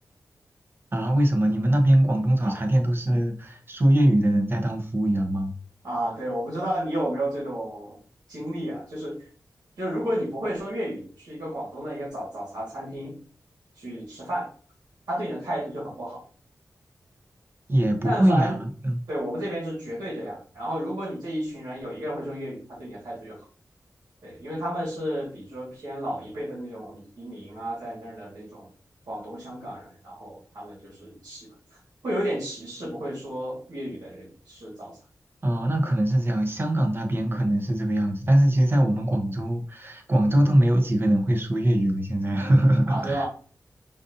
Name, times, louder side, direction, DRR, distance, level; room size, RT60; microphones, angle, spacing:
voice 1, 0.9-5.5 17.7-18.6 18.8-19.0 35.4-43.2, right 1 dB, 35° right, 3 dB, 0.9 m, -22 dB
voice 2, 5.8-8.0 8.3-9.2 9.8-13.1 13.7-14.5 15.1-16.2 18.0-18.6 19.1-23.4 24.2-28.7 29.1-35.0 42.9-43.2, right 1 dB, 75° right, -5 dB, 1.6 m, -32 dB
5.1 x 2.7 x 2.6 m, 0.43 s
wide cardioid pair, 75°, 7 cm